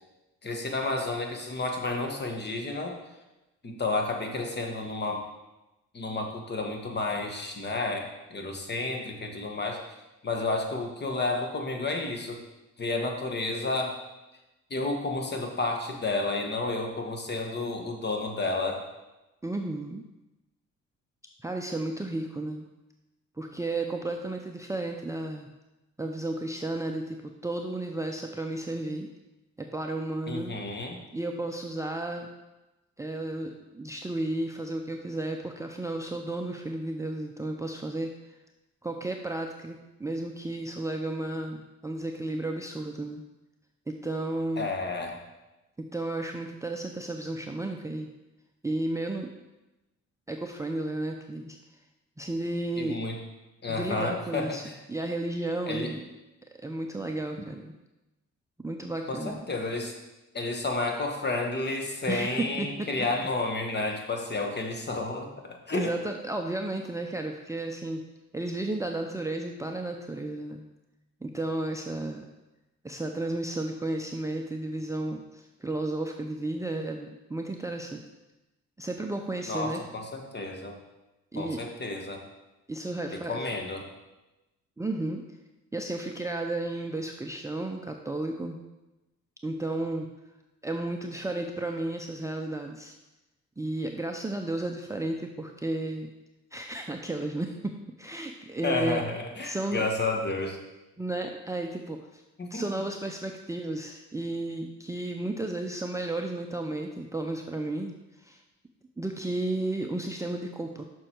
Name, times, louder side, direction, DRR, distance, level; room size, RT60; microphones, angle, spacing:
voice 1, 0.4-2.9 3.6-5.2 5.9-9.8 10.2-12.4 12.8-14.0 14.7-18.8 30.3-31.0 44.6-45.1 52.8-53.2 53.6-54.7 55.7-55.9 59.1-59.9 60.3-65.9 79.5-80.7 81.4-82.2 83.1-83.9 98.6-100.6 102.4-102.7, left 3 dB, 35° left, 2 dB, 1.5 m, -31 dB
voice 2, 19.4-20.0 21.4-22.7 23.4-25.5 26.0-29.1 29.6-30.5 31.1-32.3 33.0-38.1 38.8-41.6 41.8-43.2 43.9-44.7 45.9-48.1 48.6-49.3 50.3-51.6 52.2-53.0 53.7-56.0 56.6-57.7 58.6-59.4 62.1-62.9 65.7-68.0 68.3-70.6 71.2-72.2 72.8-78.0 78.8-79.8 81.3-81.6 82.7-83.5 84.8-85.2 85.7-88.6 89.4-90.1 90.6-92.9 93.6-96.1 96.5-99.0 99.4-99.9 101.0-102.2 102.5-108.4 109.0-110.8, right 2 dB, 10° right, 2 dB, 0.6 m, -33 dB
6.6 x 6.2 x 4.5 m, 1.0 s
cardioid pair, 90°, 30 cm